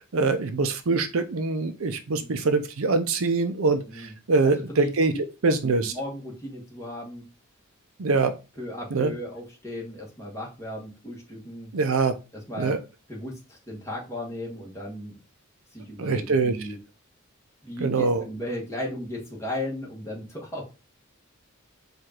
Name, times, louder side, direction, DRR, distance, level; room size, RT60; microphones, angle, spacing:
voice 1, 0.0-5.1 5.4-5.9 8.0-8.3 8.9-9.1 11.7-12.1 12.6-12.8 16.0-16.6 17.8-18.2, right 3 dB, 70° right, 9 dB, 0.6 m, -24 dB
voice 2, 4.4-4.9 5.4-5.5 5.8-7.2 8.6-11.7 12.5-12.8 13.1-15.2 15.7-16.8 17.6-20.7, left 1 dB, 15° left, -2 dB, 1.4 m, -36 dB
4.8 x 2.5 x 4.3 m, 0.29 s
head